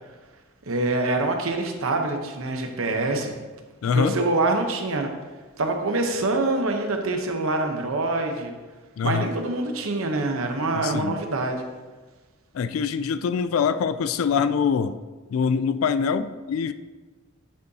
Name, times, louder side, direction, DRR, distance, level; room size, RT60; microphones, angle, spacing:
voice 1, 0.7-3.3 3.9-5.1 5.6-8.5 9.0-11.6, right 2 dB, 80° right, 4 dB, 0.9 m, -25 dB
voice 2, 3.8-4.2 9.0-9.3 10.7-11.2 12.5-15.0 15.3-16.7, left 6 dB, 75° left, 12 dB, 0.3 m, -24 dB
10.5 x 5.4 x 2.8 m, 1.3 s
head